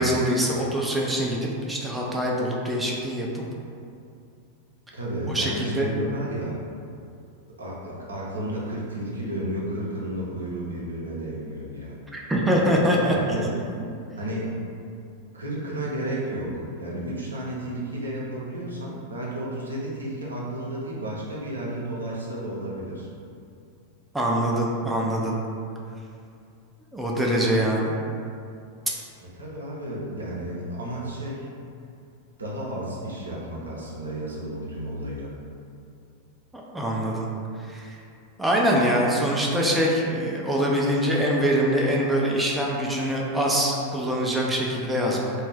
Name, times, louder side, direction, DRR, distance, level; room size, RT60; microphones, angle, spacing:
voice 1, 0.0-3.4 5.3-5.9 12.1-13.2 13.6-13.7 24.1-25.3 26.9-27.9 36.5-37.3 37.7-38.0 38.4-45.3, equal, 5° right, -3 dB, 0.4 m, -24 dB
voice 2, 4.9-6.6 7.6-12.0 13.1-13.5 14.2-14.5 15.3-23.1 29.2-31.5 32.4-35.3, right 1 dB, 75° right, -5 dB, 0.6 m, -32 dB
2.5 x 2.2 x 3.3 m, 2.5 s
figure-of-eight pair, 90°, 0 cm